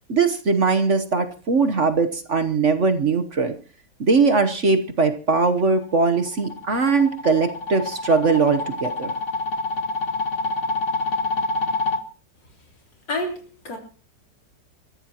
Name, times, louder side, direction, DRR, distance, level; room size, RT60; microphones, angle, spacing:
voice 1, 0.1-3.5 4.0-9.1, right 4 dB, 45° right, 7 dB, 1.2 m, -20 dB
sound 1, 5.8-12.0, left 3 dB, 45° left, 1.7 m, -27 dB
voice 2, 13.1-13.8, left 1 dB, 80° left, 2 dB, 4.3 m, -29 dB
29.0 x 14.5 x 3.0 m, 0.37 s
omnidirectional pair, 1.9 m